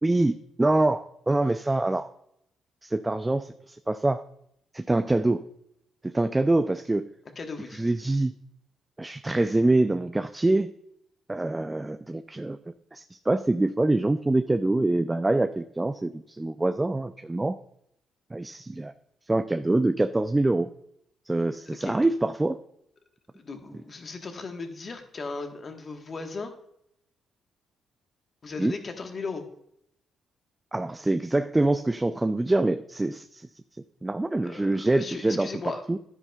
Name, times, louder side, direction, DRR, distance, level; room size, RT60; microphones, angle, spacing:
voice 1, 0.0-2.1 2.8-4.2 4.7-5.5 6.0-7.1 7.7-8.3 9.0-10.7 11.3-12.6 12.9-17.6 18.3-18.9 19.3-20.7 21.3-22.6 28.6-28.7 30.7-33.5 34.0-35.5 35.9-36.0, right 2 dB, 15° right, 10 dB, 0.4 m, -25 dB
voice 2, 7.4-7.8 21.7-22.1 23.3-26.5 28.4-29.5 34.4-35.8, left 4 dB, 40° left, 5 dB, 1.3 m, -37 dB
10.5 x 9.8 x 2.3 m, 0.74 s
cardioid pair, 90°, 0 cm